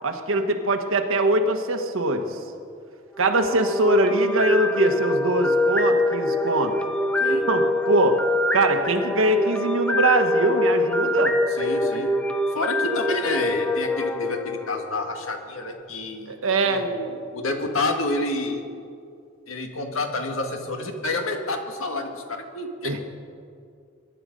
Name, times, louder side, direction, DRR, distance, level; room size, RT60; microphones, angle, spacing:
voice 1, 0.0-2.4 3.2-6.8 7.5-8.2 8.5-11.4 16.3-16.9 22.8-23.0, right 2 dB, 80° right, 6 dB, 1.4 m, -22 dB
sound 1, 3.2-15.3, left 1 dB, 5° left, 0.6 m, -24 dB
voice 2, 11.6-12.2 12.5-16.3 16.6-18.6 19.5-23.0, left 2 dB, 85° left, 4 dB, 1.9 m, -29 dB
22.5 x 11.0 x 5.3 m, 2.4 s
head